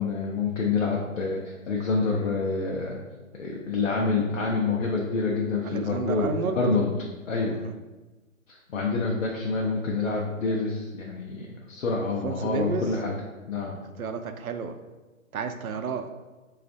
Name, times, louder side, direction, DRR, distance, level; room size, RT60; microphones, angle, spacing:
voice 1, 0.0-3.0 3.4-6.9 7.3-7.6 8.5-13.1 13.5-13.8, left 4 dB, 65° left, -1 dB, 0.6 m, -27 dB
voice 2, 5.6-6.6 7.6-7.7 12.2-13.0 14.0-14.8 15.3-16.3, right 5 dB, 85° right, 8 dB, 0.5 m, -31 dB
4.1 x 2.4 x 2.6 m, 1.2 s
hypercardioid pair, 165°, 41 cm